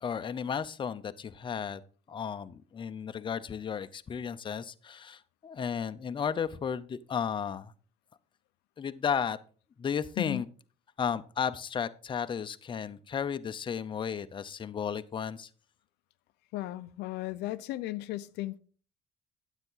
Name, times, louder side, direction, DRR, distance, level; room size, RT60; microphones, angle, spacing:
voice 1, 0.0-1.8 2.1-7.7 8.8-9.4 9.8-10.5 11.0-15.5, left 7 dB, 30° left, 0.6 m, -34 dB
voice 2, 16.5-18.6, left 17 dB, 85° left, 0.5 m, -35 dB
9.7 x 8.1 x 3.9 m
cardioid pair, 110°, 17 cm